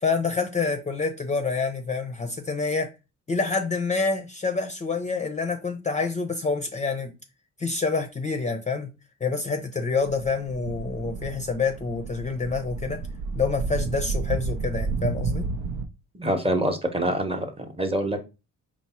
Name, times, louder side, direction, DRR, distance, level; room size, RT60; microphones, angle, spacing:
voice 1, 0.0-2.9 3.3-7.1 7.6-8.9 9.2-13.0 13.3-15.5, left 4 dB, 25° left, 0.5 m, -27 dB
sound 1, 10.0-15.9, right 4 dB, 80° right, 0.6 m, -31 dB
voice 2, 16.1-18.2, right 1 dB, 20° right, 0.8 m, -26 dB
4.6 x 2.0 x 4.1 m
cardioid pair, 90°, 30 cm